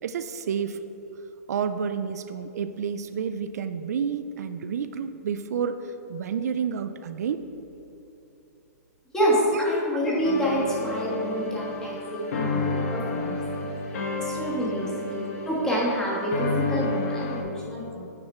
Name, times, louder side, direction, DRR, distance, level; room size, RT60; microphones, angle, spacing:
voice 1, 0.0-0.8 1.5-7.4 9.5-9.7 14.9-15.0, right 7 dB, 75° right, 10 dB, 0.4 m, -30 dB
voice 2, 9.1-13.7 14.2-18.1, equal, 5° left, -5 dB, 1.3 m, -27 dB
sound 1, 10.2-17.4, left 2 dB, 55° left, 1.2 m, -31 dB
8.6 x 4.8 x 4.3 m, 2.9 s
hypercardioid pair, 165°, 9 cm